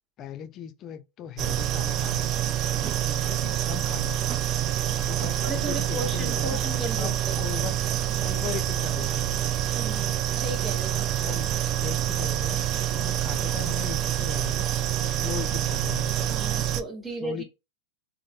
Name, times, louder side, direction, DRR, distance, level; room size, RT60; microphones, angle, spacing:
voice 1, 0.2-2.3 2.7-4.2 5.0-6.6 7.0-7.8 8.2-9.4 11.2-11.5 11.8-12.6 12.9-16.4 17.2-17.4, left 9 dB, 40° left, 0.4 m, -38 dB
sound 1, 1.4-16.8, right 11 dB, 40° right, 0.3 m, -27 dB
voice 2, 5.2-7.1 9.7-11.3 16.3-17.4, right 1 dB, 10° right, 1.0 m, -35 dB
3.0 x 2.1 x 2.6 m
hypercardioid pair, 100°, 0 cm